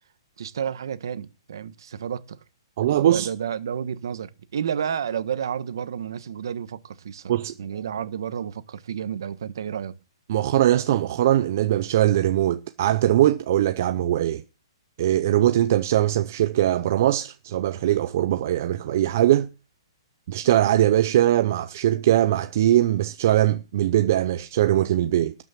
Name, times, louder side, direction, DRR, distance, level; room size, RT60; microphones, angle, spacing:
voice 1, 0.4-2.4 3.1-7.3 7.6-10.0, right 8 dB, 50° right, 1.2 m, -31 dB
voice 2, 2.8-3.3 7.3-7.5 10.3-14.4 15.0-19.5 20.3-25.4, right 12 dB, 30° right, 0.5 m, -21 dB
12.5 x 6.1 x 7.4 m
hypercardioid pair, 180°, 3 cm